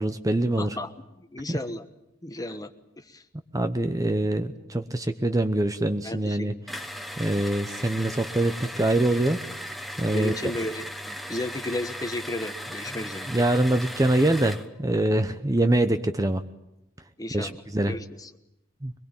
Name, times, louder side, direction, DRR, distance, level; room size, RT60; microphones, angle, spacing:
voice 1, 0.0-0.8 1.5-1.6 3.5-6.5 7.2-9.4 10.0-10.3 13.3-16.4 17.3-17.9 18.8-18.9, right 1 dB, 15° right, 8 dB, 0.8 m, -24 dB
voice 2, 0.6-1.9 2.2-2.7 3.0-3.2 6.0-6.6 10.1-13.3 17.2-18.3, left 1 dB, 20° left, 9 dB, 1.3 m, -34 dB
sound 1, 6.7-14.7, equal, ahead, 1.2 m, -37 dB
23.5 x 22.0 x 8.8 m, 0.87 s
head